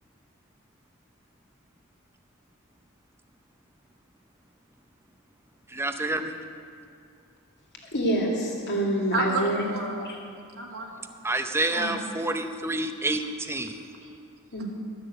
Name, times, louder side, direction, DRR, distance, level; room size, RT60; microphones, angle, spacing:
voice 1, 5.7-6.4 11.2-13.8, right 2 dB, 10° right, 7 dB, 0.6 m, -28 dB
voice 2, 7.9-9.7 11.8-11.9 14.5-14.7, right 1 dB, 50° left, -1 dB, 2.2 m, -26 dB
voice 3, 9.1-10.2 10.6-11.1 11.7-12.1 13.1-13.3 13.6-14.2, right 3 dB, 70° right, -1 dB, 1.6 m, -33 dB
12.5 x 6.6 x 8.1 m, 2.4 s
head